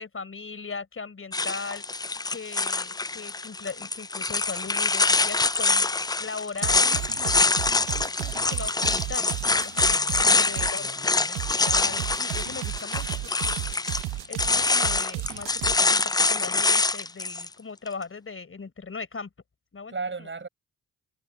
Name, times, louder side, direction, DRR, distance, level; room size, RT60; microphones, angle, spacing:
voice 1, 0.0-1.8 2.3-5.9 6.2-13.6 14.3-19.3 19.7-19.9 20.2-20.3, left 4 dB, 40° left, 5.0 m, -39 dB
sound 1, 1.3-17.5, left 3 dB, 10° left, 0.4 m, -25 dB
sound 2, 6.6-10.7 11.3-15.8, right 17 dB, 90° right, 0.8 m, -34 dB
voice 2, 9.8-11.3 19.9-20.5, right 4 dB, 35° right, 7.4 m, -38 dB
supercardioid pair, 55°, 32 cm